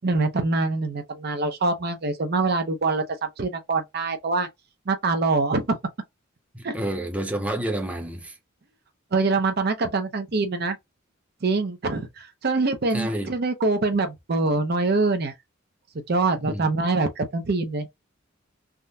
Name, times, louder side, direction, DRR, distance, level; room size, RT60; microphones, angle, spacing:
voice 1, 0.0-4.5 4.9-5.7 6.6-6.7 9.1-10.8 11.4-15.3 16.1-17.9, right 3 dB, 50° right, 0.6 m, -24 dB
voice 2, 6.5-8.4 12.9-13.3 16.4-16.6, right 1 dB, 5° right, 0.7 m, -29 dB
3.5 x 2.1 x 2.7 m
head